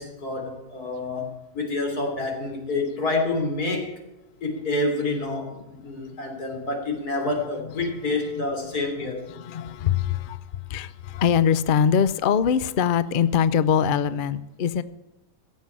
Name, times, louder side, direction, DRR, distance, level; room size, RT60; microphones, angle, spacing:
voice 1, 0.0-3.9 4.4-9.2, left 2 dB, 65° left, 2 dB, 3.9 m, -28 dB
voice 2, 9.3-10.4 10.7-14.8, left 8 dB, 90° left, 15 dB, 0.4 m, -22 dB
17.0 x 7.4 x 8.7 m, 0.99 s
omnidirectional pair, 1.8 m